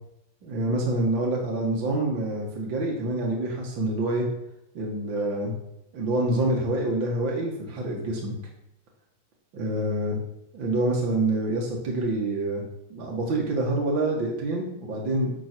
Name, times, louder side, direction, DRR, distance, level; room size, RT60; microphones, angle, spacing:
voice 1, 0.4-4.3 4.7-5.5 5.9-8.3 9.5-10.2 10.5-12.6 12.9-15.5, right 2 dB, 65° right, -2 dB, 2.5 m, -26 dB
12.0 x 7.9 x 4.6 m, 0.83 s
omnidirectional pair, 2.3 m